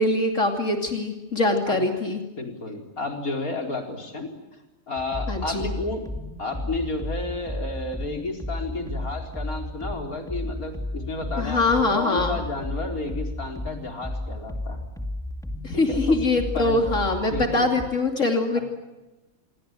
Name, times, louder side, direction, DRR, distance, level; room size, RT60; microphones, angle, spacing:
voice 1, 0.0-2.2 5.3-5.7 11.4-12.4 15.6-18.6, left 2 dB, 60° left, 4 dB, 3.1 m, -23 dB
voice 2, 2.4-4.3 4.9-6.0 6.4-11.6 11.9-14.9 15.7-16.2 16.5-16.8 17.3-17.7 18.5-18.6, left 2 dB, 80° left, 3 dB, 5.0 m, -32 dB
sound 1, 5.0-17.9, left 1 dB, ahead, 2.2 m, -33 dB
28.0 x 23.0 x 9.2 m, 1.1 s
omnidirectional pair, 1.5 m